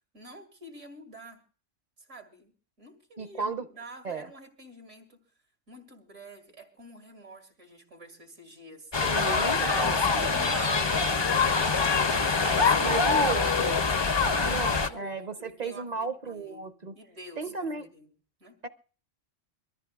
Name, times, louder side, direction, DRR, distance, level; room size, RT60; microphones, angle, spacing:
voice 1, 0.1-1.4 2.1-5.3 5.7-8.9 9.5-11.0 11.4-12.0 12.4-13.0 13.4-18.1 18.4-18.6, right 1 dB, 90° right, 2.6 m, -47 dB
voice 2, 3.2-3.7 4.0-4.3 9.0-10.3 12.8-13.8 14.5-17.0 17.4-17.9 18.6-18.7, right 4 dB, 45° right, 0.7 m, -34 dB
sound 1, 8.9-14.9, left 4 dB, 30° left, 0.5 m, -24 dB
23.5 x 13.5 x 2.4 m
omnidirectional pair, 1.2 m